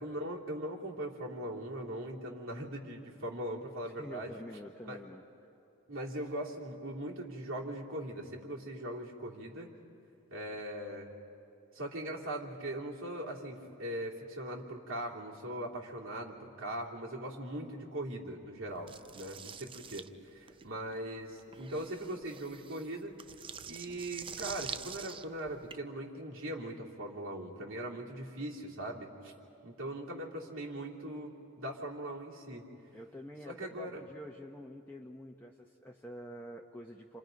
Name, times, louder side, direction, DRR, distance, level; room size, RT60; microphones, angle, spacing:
voice 1, 0.0-4.4 4.8-5.0 5.9-9.7 10.3-11.1 11.7-23.1 23.7-29.3 29.6-32.7 33.5-34.0, right 1 dB, 65° right, -4 dB, 3.1 m, -40 dB
voice 2, 3.8-5.2 32.9-37.2, equal, 10° left, 0 dB, 0.9 m, -47 dB
sound 1, 18.9-25.7, right 6 dB, 25° right, 0.5 m, -46 dB
30.0 x 27.0 x 5.3 m, 2.7 s
head